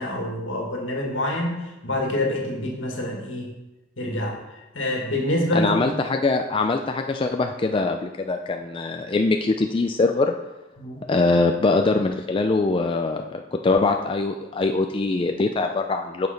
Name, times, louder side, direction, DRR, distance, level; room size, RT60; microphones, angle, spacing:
voice 1, 0.0-3.5 4.0-6.0 10.8-11.1, left 1 dB, 70° left, 0 dB, 2.0 m, -27 dB
voice 2, 5.5-10.4 11.1-16.3, left 3 dB, 25° left, 4 dB, 0.4 m, -23 dB
7.0 x 6.6 x 5.2 m, 1.0 s
head